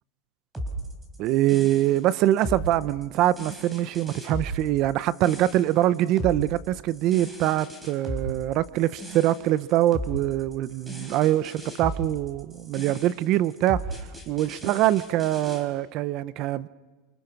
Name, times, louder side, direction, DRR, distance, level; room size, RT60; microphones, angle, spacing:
sound 1, 0.5-15.6, right 1 dB, 10° right, 4.6 m, -36 dB
voice 1, 1.2-13.8 14.3-16.7, right 14 dB, 40° right, 0.6 m, -24 dB
28.5 x 25.0 x 6.0 m
supercardioid pair, 155°, 0 cm